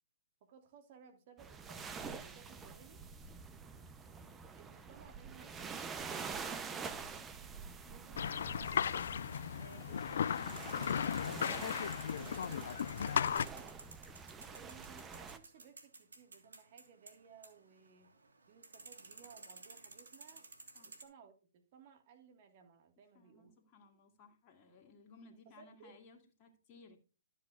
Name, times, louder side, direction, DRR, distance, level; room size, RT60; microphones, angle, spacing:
voice 1, 0.4-3.0 4.6-6.7 7.0-7.5 7.9-9.0 9.5-13.8 14.5-18.1 18.5-20.5 21.0-23.5 25.5-26.0, right 7 dB, 45° right, 1.8 m, -60 dB
sound 1, 1.4-15.4, right 5 dB, 15° right, 0.7 m, -47 dB
voice 2, 6.5-7.3 7.8-8.2 20.7-20.9 23.1-27.0, left 3 dB, 30° left, 2.2 m, -61 dB
sound 2, 8.2-13.5, left 8 dB, 65° left, 0.4 m, -36 dB
sound 3, 10.5-21.0, right 3 dB, 85° right, 1.7 m, -55 dB
12.0 x 8.3 x 2.5 m
hypercardioid pair, 135°, 0 cm